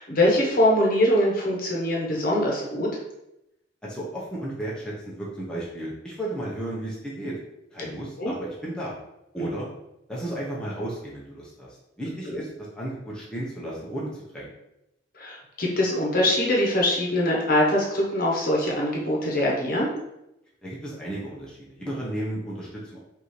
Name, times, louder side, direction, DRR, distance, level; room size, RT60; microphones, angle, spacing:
voice 1, 0.0-2.9 7.8-7.9 8.2-8.3 9.4-9.5 15.2-19.9, left 1 dB, 45° left, -2 dB, 1.0 m, -23 dB
voice 2, 3.8-7.3 7.7-8.9 9.3-9.7 10.1-11.7 12.0-12.5 12.7-14.5 20.6-23.0, right 1 dB, 5° left, -6 dB, 0.7 m, -33 dB
5.3 x 2.7 x 3.1 m, 0.87 s
head